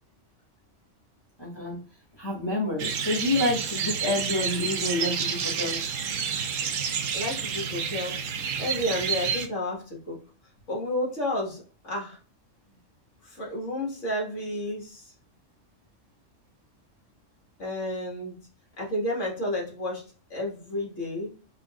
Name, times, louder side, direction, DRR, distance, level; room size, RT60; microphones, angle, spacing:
voice 1, 1.4-1.8 2.2-5.8, left 2 dB, 20° left, -5 dB, 1.7 m, -28 dB
sound 1, 2.8-9.5, right 7 dB, 85° right, 1.1 m, -29 dB
voice 2, 7.1-8.2 8.6-10.2 10.7-12.2 13.2-15.1 17.6-18.4 18.8-20.0 20.3-21.3, left 1 dB, 75° left, -3 dB, 2.3 m, -31 dB
5.1 x 4.1 x 2.5 m, 0.38 s
omnidirectional pair, 1.3 m